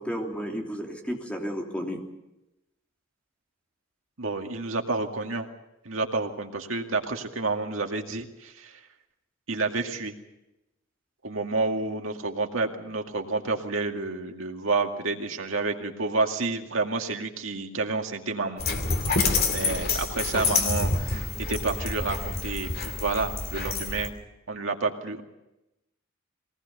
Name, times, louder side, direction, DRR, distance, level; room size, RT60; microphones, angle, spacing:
voice 1, 0.0-2.0, equal, 5° left, 1 dB, 3.1 m, -32 dB
voice 2, 4.2-5.5 5.8-8.8 9.5-10.1 11.2-18.6 19.5-24.1 24.5-25.2, right 3 dB, 85° right, 3 dB, 2.2 m, -29 dB
Dog, 18.6-24.1, left 3 dB, 50° left, 2.5 m, -27 dB
22.5 x 19.0 x 6.8 m, 0.92 s
head